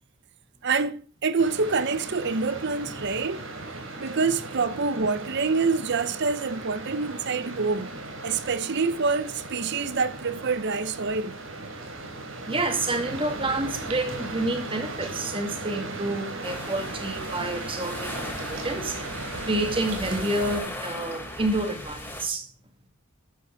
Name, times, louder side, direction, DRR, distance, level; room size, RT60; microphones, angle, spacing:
voice 1, 0.6-3.5 4.0-7.9 8.2-11.3, right 4 dB, 60° right, 0.7 m, -26 dB
sound 1, 1.4-20.6, right 2 dB, 75° right, 3.5 m, -37 dB
voice 2, 12.4-19.0 19.4-22.5, right 2 dB, 25° right, 2.2 m, -29 dB
sound 2, 16.4-22.2, left 1 dB, 10° left, 3.7 m, -38 dB
13.5 x 11.0 x 4.0 m
head